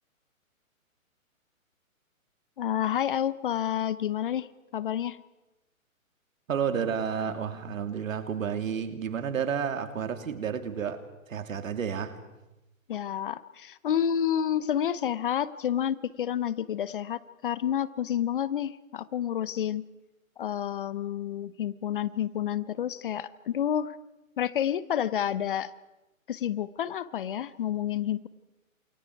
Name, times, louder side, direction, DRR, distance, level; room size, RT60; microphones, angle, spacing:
voice 1, 2.6-4.5 4.7-5.2 12.9-19.8 20.4-23.9 24.4-25.7 26.3-28.3, left 10 dB, 40° left, 0.8 m, -29 dB
voice 2, 6.5-11.0 11.3-12.1, right 7 dB, 70° right, 2.8 m, -31 dB
28.0 x 27.5 x 4.7 m
hypercardioid pair, 150°, 42 cm